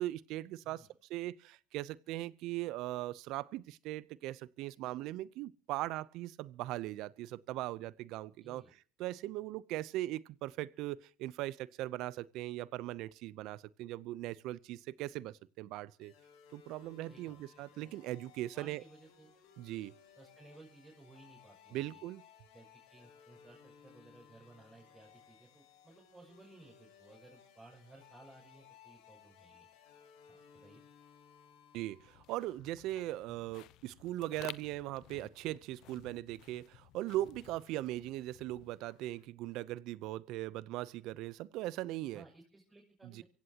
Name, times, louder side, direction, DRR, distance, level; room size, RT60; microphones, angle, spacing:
voice 1, 0.0-8.6 9.0-16.1 16.5-18.8 19.6-19.9 21.7-22.2 31.7-42.2 43.0-43.2, right 16 dB, 70° right, 0.7 m, -39 dB
voice 2, 8.4-8.7 17.1-17.9 18.5-19.3 20.2-22.0 22.5-29.7 30.3-30.8 42.1-43.2, right 2 dB, 15° right, 6.6 m, -59 dB
sound 1, 16.0-32.4, left 7 dB, 85° left, 6.6 m, -61 dB
sound 2, 32.0-39.3, left 15 dB, 65° left, 0.8 m, -55 dB
24.5 x 16.0 x 2.9 m
supercardioid pair, 100°, 0 cm